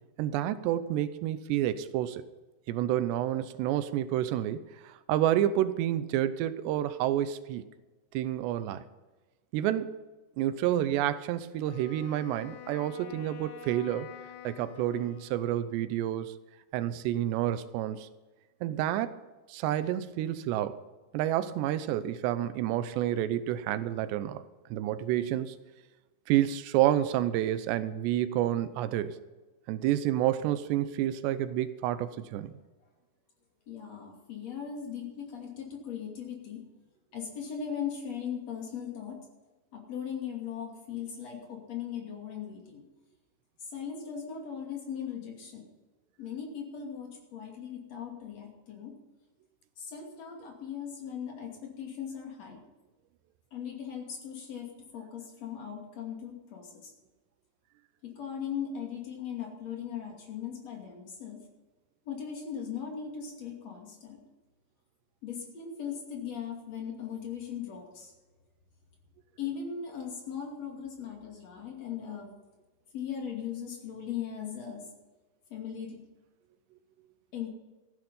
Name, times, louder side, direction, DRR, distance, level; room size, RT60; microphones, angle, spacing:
voice 1, 0.2-2.2 2.7-7.7 8.1-8.8 9.5-9.9 10.4-14.1 14.4-16.3 16.7-18.1 18.6-19.2 19.5-20.8 21.1-24.4 24.7-25.6 26.3-29.2 29.7-32.6, right 12 dB, 90° right, 13 dB, 2.9 m, -29 dB
Wind instrument woodwind instrument, 11.6-15.8, left 8 dB, 80° left, 3.0 m, -47 dB
voice 2, 33.7-36.6 37.1-39.2 39.7-42.8 43.7-45.7 46.2-48.9 49.8-52.6 53.5-56.9 58.2-61.4 62.1-64.2 65.2-68.1 69.4-72.3 72.9-74.8 75.5-76.0 77.3-77.5, left 8 dB, 45° left, 1 dB, 3.3 m, -38 dB
14.5 x 10.5 x 5.5 m, 1.2 s
omnidirectional pair, 4.8 m